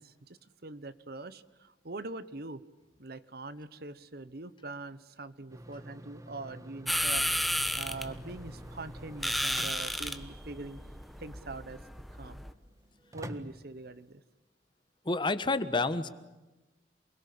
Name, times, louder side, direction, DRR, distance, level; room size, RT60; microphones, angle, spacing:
voice 1, 0.0-2.6 3.0-7.3 7.7-10.8 11.2-11.8 12.1-12.4 13.1-14.2, right 2 dB, 60° right, 14 dB, 1.2 m, -43 dB
sound 1, 5.5-14.2, right 1 dB, 20° right, 1.4 m, -49 dB
sound 2, 6.9-12.5, equal, ahead, 1.3 m, -33 dB
voice 2, 15.0-16.1, left 3 dB, 25° left, 12 dB, 1.3 m, -29 dB
28.5 x 21.5 x 8.7 m, 1.1 s
head